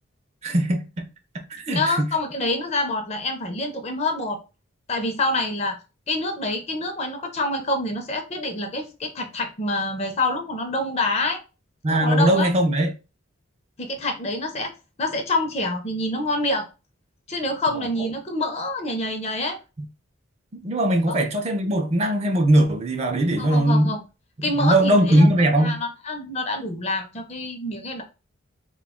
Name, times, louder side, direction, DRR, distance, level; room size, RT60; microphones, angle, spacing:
voice 1, 0.4-1.1 1.7-2.1 11.8-12.9 20.6-24.0 24.6-25.8, right 1 dB, 30° right, 0.4 m, -20 dB
voice 2, 1.7-4.4 4.9-5.7 6.1-11.4 11.9-12.5 13.8-14.7 15.0-16.6 17.3-19.6 21.1-21.2 23.4-24.0 24.4-25.3 25.6-28.0, left 2 dB, 35° left, 0.5 m, -26 dB
2.2 x 2.2 x 3.5 m
head